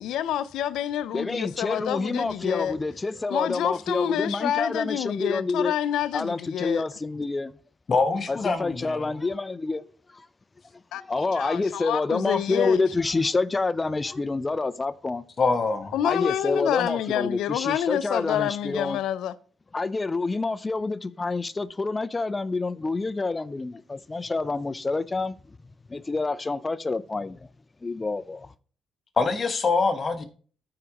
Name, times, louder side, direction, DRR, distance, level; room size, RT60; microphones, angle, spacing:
voice 1, 0.0-2.8 3.3-6.8 10.9-12.8 15.9-19.4, left 11 dB, 85° left, 0.4 m, -28 dB
voice 2, 1.1-5.7 6.1-7.5 8.3-9.9 10.1-10.3 11.0-15.2 16.0-19.0 19.7-25.4 25.9-27.5 27.8-28.5, left 3 dB, 25° left, 0.5 m, -28 dB
voice 3, 7.9-9.1 15.4-15.9 29.2-30.2, left 4 dB, 40° left, 1.2 m, -24 dB
13.5 x 4.7 x 2.9 m
cardioid pair, 90°, 0 cm